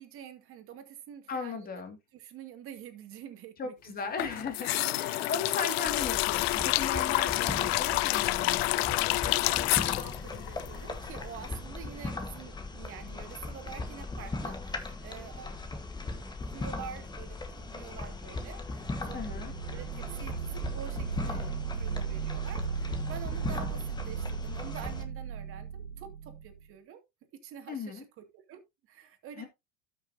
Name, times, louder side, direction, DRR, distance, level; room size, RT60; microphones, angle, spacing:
voice 1, 0.0-1.7 2.1-4.3 4.7-5.3 9.5-15.6 16.4-19.2 19.7-27.0 27.3-28.1 28.3-28.6 28.9-29.5, right 9 dB, 45° right, 2.3 m, -47 dB
voice 2, 1.3-2.0 3.6-9.2 19.1-19.5 27.7-28.0 29.4-29.5, left 5 dB, 30° left, 2.3 m, -37 dB
sound 1, 4.2-11.2 11.5-11.6, left 19 dB, 80° left, 0.5 m, -28 dB
sound 2, 5.8-25.0, left 3 dB, 15° left, 1.5 m, -39 dB
sound 3, 19.0-26.6, right 6 dB, 85° right, 1.4 m, -36 dB
12.5 x 6.3 x 2.8 m
supercardioid pair, 120°, 31 cm